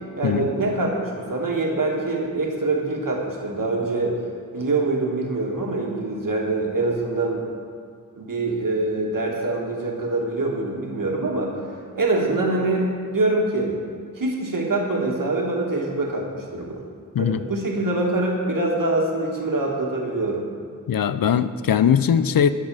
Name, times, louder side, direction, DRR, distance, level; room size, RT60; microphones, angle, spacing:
voice 1, 0.2-4.2 4.5-7.4 8.2-13.8 14.2-16.8 17.2-20.4, right 2 dB, 65° right, -1 dB, 1.6 m, -24 dB
voice 2, 20.9-22.5, left 8 dB, 75° left, 12 dB, 0.5 m, -20 dB
11.5 x 4.1 x 7.4 m, 2.1 s
wide cardioid pair, 55°, 35 cm